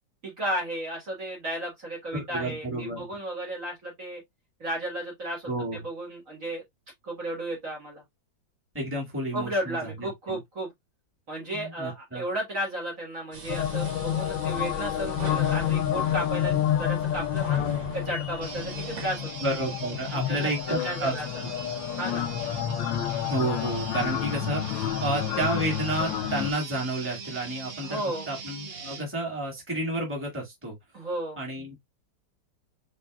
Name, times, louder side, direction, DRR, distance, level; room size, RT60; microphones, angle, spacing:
voice 1, 0.2-4.2 4.6-6.6 7.0-8.0 9.3-10.7 11.3-17.6 17.9-19.3 20.1-20.5 20.8-21.3 22.0-22.3 27.8-28.3 30.9-31.4, right 1 dB, 45° right, 1.9 m, -33 dB
voice 2, 2.1-3.1 5.5-5.8 8.7-10.4 11.5-12.2 19.4-21.1 23.3-30.8 31.4-31.9, right 1 dB, 5° right, 1.8 m, -31 dB
sound 1, 13.3-19.1, right 3 dB, 80° right, 2.3 m, -41 dB
sound 2, 13.5-26.5, left 11 dB, 75° left, 1.3 m, -29 dB
sound 3, 18.4-29.1, right 5 dB, 65° right, 0.5 m, -41 dB
5.2 x 3.4 x 2.3 m
omnidirectional pair, 2.1 m